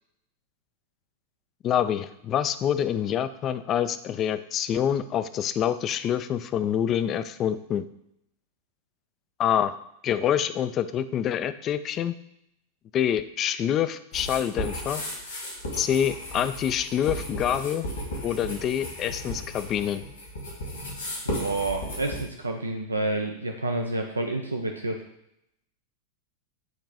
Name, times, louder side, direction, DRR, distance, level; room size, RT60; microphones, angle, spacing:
voice 1, 1.6-7.9 9.4-9.8 10.0-12.1 12.9-15.0 15.8-17.9 18.2-20.0, left 9 dB, 30° left, 13 dB, 0.3 m, -26 dB
sound 1, 14.1-22.2, equal, 70° left, 2.1 m, -35 dB
voice 2, 21.2-25.0, right 2 dB, 80° right, 3 dB, 0.5 m, -29 dB
7.9 x 3.0 x 4.1 m, 0.79 s
figure-of-eight pair, 90°, 0 cm